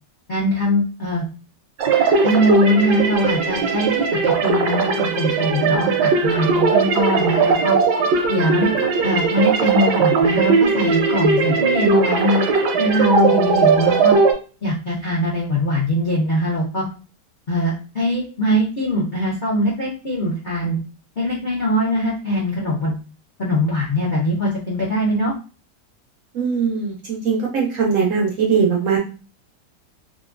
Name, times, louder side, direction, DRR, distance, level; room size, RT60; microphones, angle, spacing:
voice 1, 0.3-1.2 2.2-7.8 8.3-8.7 9.0-12.4 12.8-14.2 14.6-16.8 17.5-20.8 21.2-23.0 23.4-25.3, equal, 60° left, -6 dB, 0.5 m, -21 dB
sound 1, 1.8-14.3, right 4 dB, 85° right, 1.2 m, -18 dB
voice 2, 26.3-29.0, right 5 dB, 65° right, -1 dB, 0.8 m, -20 dB
2.9 x 2.3 x 2.4 m, 0.36 s
omnidirectional pair, 1.8 m